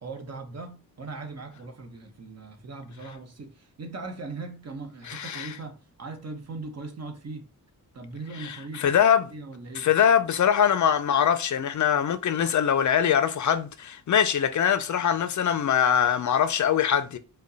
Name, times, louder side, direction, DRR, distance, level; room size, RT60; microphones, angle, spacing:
voice 1, 0.0-7.5 7.9-9.0 9.3-9.9, right 3 dB, 45° right, 1.0 m, -39 dB
voice 2, 5.1-5.5 8.4-9.2 9.8-17.2, left 8 dB, 50° left, 0.5 m, -23 dB
5.1 x 2.2 x 3.9 m
cardioid pair, 95°, 37 cm